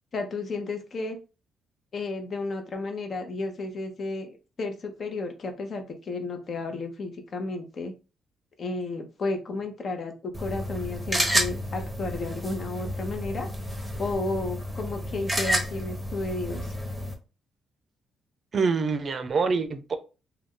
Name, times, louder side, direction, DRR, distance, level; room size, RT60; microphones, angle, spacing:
voice 1, 0.1-1.2 1.9-7.9 8.6-13.5 14.0-16.7, left 3 dB, 45° left, 6 dB, 0.7 m, -33 dB
sound 1, 10.3-17.1, equal, 10° right, 0.8 m, -30 dB
voice 2, 18.5-20.0, right 4 dB, 45° right, 9 dB, 0.5 m, -25 dB
2.5 x 2.3 x 3.6 m, 0.31 s
cardioid pair, 90°, 0 cm